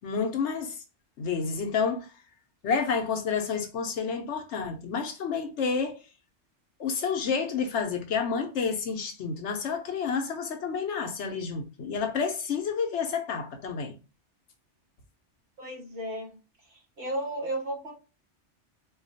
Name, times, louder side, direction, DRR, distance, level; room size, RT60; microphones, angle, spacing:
voice 1, 0.0-0.8 1.2-2.1 2.6-6.0 6.8-14.0, left 5 dB, 80° left, 1.1 m, -29 dB
voice 2, 15.6-16.4 17.0-17.9, right 1 dB, 70° right, 1.9 m, -33 dB
4.2 x 2.3 x 2.6 m
omnidirectional pair, 1.2 m